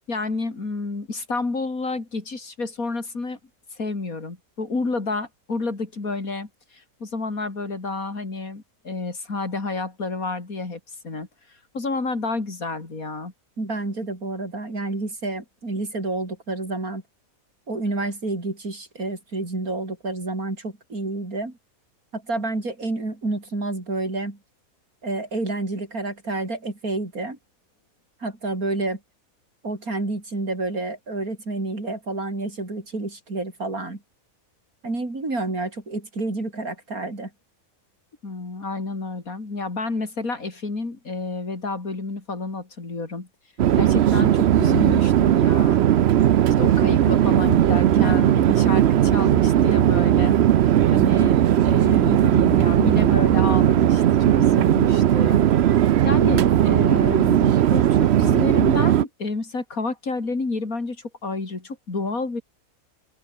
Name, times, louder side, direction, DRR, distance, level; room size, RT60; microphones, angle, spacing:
voice 1, 0.1-3.4 3.8-11.3 11.7-13.3 38.2-43.3 43.7-45.9 46.6-50.4 50.9-55.5 55.7-62.4, left 3 dB, 80° left, 4.2 m, -30 dB
voice 2, 13.6-17.0 17.7-21.6 22.1-24.4 25.0-27.4 28.2-29.0 29.6-34.0 34.8-37.3 47.9-48.5, right 2 dB, 85° right, 5.7 m, -29 dB
Chatter / Fixed-wing aircraft airplane, 43.6-59.0, right 11 dB, 60° right, 0.8 m, -18 dB
open air
omnidirectional pair, 1.5 m